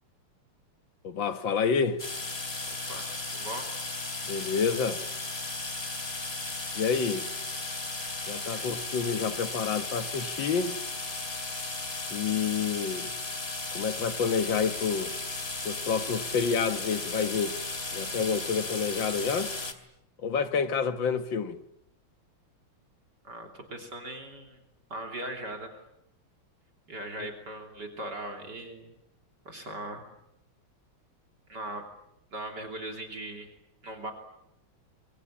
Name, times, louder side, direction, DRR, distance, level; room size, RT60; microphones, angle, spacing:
voice 1, 1.0-2.0 4.3-5.0 6.8-7.3 8.3-10.8 12.1-13.1 13.7-15.1 15.6-17.6 17.9-19.5 20.2-21.6 27.2-27.3, left 6 dB, 65° left, 2.0 m, -28 dB
sound 1, 2.0-19.7, left 3 dB, 30° left, 2.6 m, -35 dB
voice 2, 3.3-3.7 8.5-8.7 23.2-24.6 24.9-25.7 26.9-28.9 29.5-30.1 31.5-31.8 32.3-33.5 33.8-34.1, right 1 dB, 50° right, 3.7 m, -39 dB
27.5 x 23.5 x 8.6 m
omnidirectional pair, 2.3 m